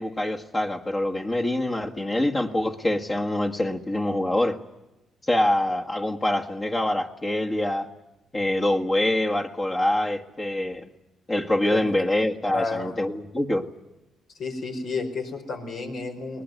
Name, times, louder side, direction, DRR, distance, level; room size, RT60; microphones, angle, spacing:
voice 1, 0.0-4.6 5.3-7.9 8.3-10.9 11.3-13.7, left 1 dB, 25° left, 2 dB, 1.8 m, -25 dB
voice 2, 12.5-12.9 14.4-16.4, left 3 dB, 70° left, 4 dB, 4.9 m, -31 dB
22.0 x 19.0 x 9.5 m, 1.0 s
cardioid pair, 90°, 0 cm